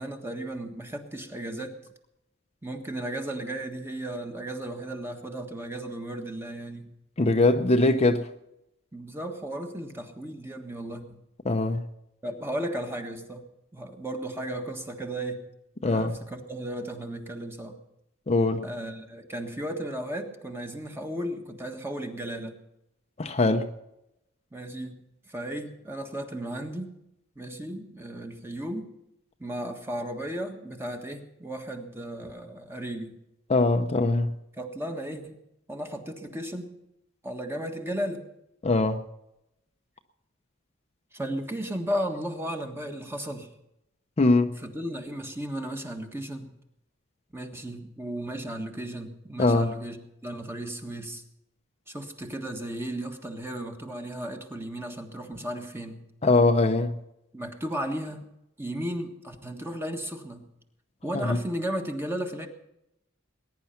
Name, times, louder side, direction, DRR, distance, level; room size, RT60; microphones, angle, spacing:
voice 1, 0.0-1.7 2.6-6.9 8.9-11.2 12.2-15.4 15.8-17.8 18.6-22.6 24.5-24.9 25.3-26.9 27.3-28.9 29.4-33.2 34.6-35.4 35.7-36.7 37.2-38.2 41.1-43.5 44.6-46.5 47.3-51.2 51.9-56.0 57.3-58.3 58.6-60.5 61.0-62.5, right 1 dB, 10° right, 4 dB, 1.5 m, -35 dB
voice 2, 7.2-8.2 11.5-11.8 15.8-16.1 18.3-18.6 23.2-23.7 33.5-34.3 38.6-39.0 44.2-44.6 49.4-49.7 56.2-56.9, left 2 dB, 30° left, 6 dB, 0.7 m, -22 dB
20.5 x 10.5 x 5.8 m, 0.87 s
head